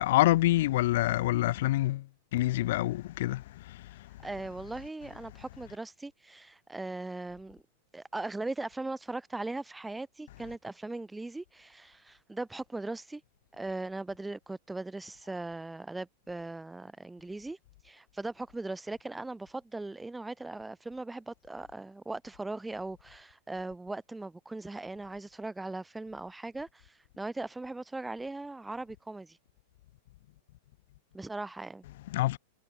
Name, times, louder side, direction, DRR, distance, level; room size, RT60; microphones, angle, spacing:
voice 1, 0.0-2.0 2.3-3.8 32.1-32.4, left 16 dB, 55° left, 0.9 m, -26 dB
voice 2, 4.2-7.6 7.9-13.2 13.5-17.6 17.8-29.4 31.1-31.8, right 2 dB, 5° right, 4.7 m, -39 dB
figure-of-eight pair, 95°, 0 cm